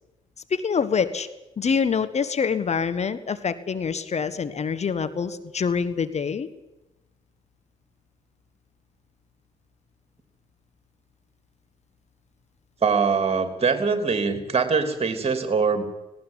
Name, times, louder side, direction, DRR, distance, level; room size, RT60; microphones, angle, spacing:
voice 1, 0.5-1.3 1.6-6.5, left 6 dB, 40° left, 11 dB, 1.4 m, -25 dB
voice 2, 12.8-15.9, right 5 dB, 35° right, 7 dB, 3.2 m, -23 dB
19.0 x 17.0 x 9.5 m, 0.99 s
figure-of-eight pair, 40°, 17 cm